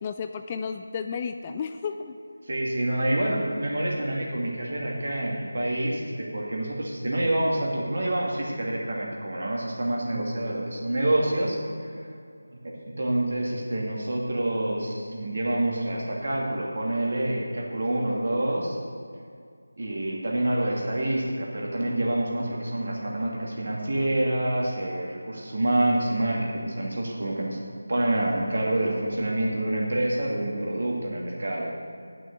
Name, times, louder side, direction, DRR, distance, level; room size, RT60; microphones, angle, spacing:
voice 1, 0.0-2.2, left 6 dB, 20° left, 7 dB, 0.3 m, -32 dB
voice 2, 2.5-12.1 12.5-18.8 19.8-27.6 27.9-31.7, right 1 dB, 55° right, -2 dB, 2.3 m, -27 dB
9.1 x 6.2 x 8.2 m, 2.3 s
figure-of-eight pair, 170°, 0 cm